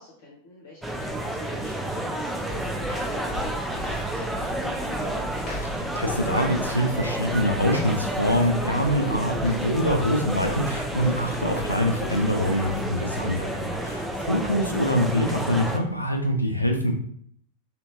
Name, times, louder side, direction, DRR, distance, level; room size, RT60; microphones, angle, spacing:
voice 1, 0.0-5.2 14.0-14.4, left 2 dB, 55° left, -4 dB, 0.8 m, -47 dB
sound 1, 0.8-15.8, right 1 dB, ahead, 0.4 m, -30 dB
sound 2, 2.5-13.6, equal, 35° left, 1.1 m, -39 dB
voice 2, 6.0-16.9, equal, 85° left, 3 dB, 0.4 m, -24 dB
3.0 x 2.4 x 2.7 m, 0.63 s
figure-of-eight pair, 90°, 0 cm